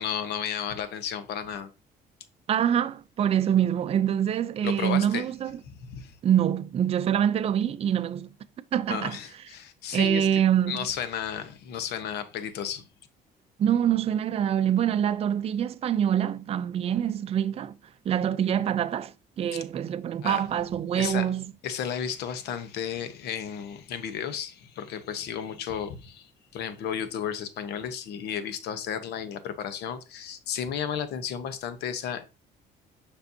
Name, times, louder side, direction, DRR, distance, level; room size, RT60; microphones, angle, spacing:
voice 1, 0.0-1.7 4.6-5.3 5.7-6.2 8.9-12.8 20.2-20.5 21.0-21.3 21.6-32.2, left 8 dB, 75° left, 0.9 m, -33 dB
voice 2, 2.5-5.6 6.2-8.3 8.7-9.2 9.9-10.9 13.6-17.7 18.1-21.5, right 9 dB, 35° right, 0.4 m, -25 dB
6.9 x 5.3 x 2.7 m
cardioid pair, 110°, 17 cm